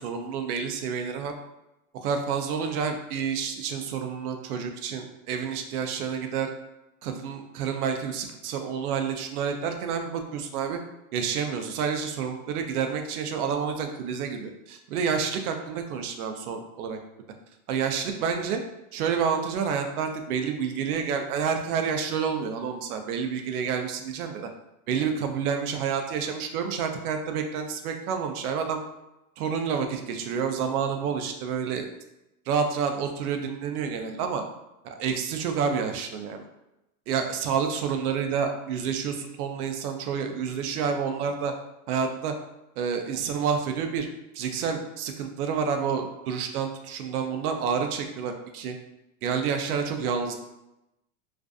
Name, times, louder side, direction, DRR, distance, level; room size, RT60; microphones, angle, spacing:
voice 1, 0.0-1.3 2.0-6.5 7.0-10.8 11.1-17.0 17.7-18.6 18.9-24.5 24.9-28.8 29.4-31.9 32.5-34.4 34.8-36.4 37.1-41.5 41.9-42.3 42.8-44.1 44.3-48.8 49.2-50.3, right 6 dB, 75° right, 5 dB, 0.6 m, -29 dB
2.5 x 2.4 x 2.3 m, 0.92 s
supercardioid pair, 175°, 45 cm